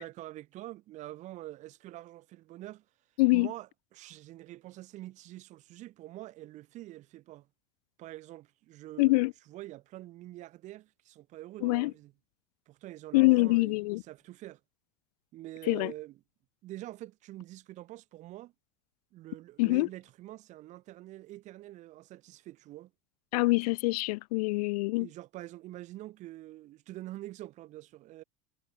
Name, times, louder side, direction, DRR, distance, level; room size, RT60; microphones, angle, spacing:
voice 1, 0.0-2.8 3.3-7.5 8.0-9.2 9.5-12.1 12.7-14.6 15.3-16.2 16.6-18.5 19.1-22.9 25.0-28.2, right 16 dB, 35° right, 4.4 m, -45 dB
voice 2, 9.0-9.3 11.6-11.9 13.1-14.0 15.7-15.9 19.6-19.9 23.3-25.1, left 23 dB, 70° left, 0.6 m, -25 dB
supercardioid pair, 170°, 20 cm